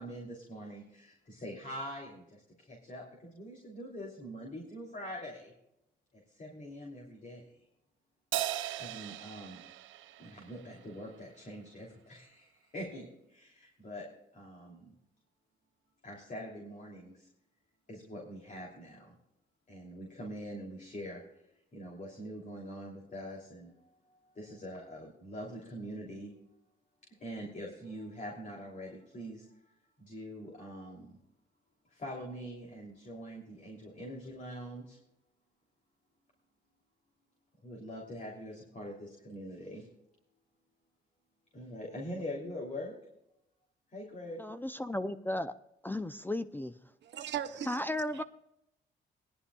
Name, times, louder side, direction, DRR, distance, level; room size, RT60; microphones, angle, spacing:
voice 1, 0.0-5.5 6.1-7.6 8.8-9.6 10.2-14.1 14.3-14.9 16.0-17.3 17.9-19.2 19.7-21.2 21.7-23.8 24.1-26.3 27.2-29.6 30.0-31.2 31.9-35.0 37.6-39.9 41.5-43.0 43.9-44.4, equal, 40° left, -1 dB, 3.0 m, -44 dB
Crash cymbal, 8.3-11.0, right 13 dB, 80° right, 0.6 m, -38 dB
voice 2, 44.4-45.5 45.8-46.7 47.7-48.2, left 1 dB, 10° left, 12 dB, 0.5 m, -35 dB
voice 3, 47.0-47.8 48.1-48.2, right 10 dB, 65° right, 7 dB, 1.0 m, -38 dB
19.5 x 11.0 x 2.3 m, 0.84 s
cardioid pair, 90°, 20 cm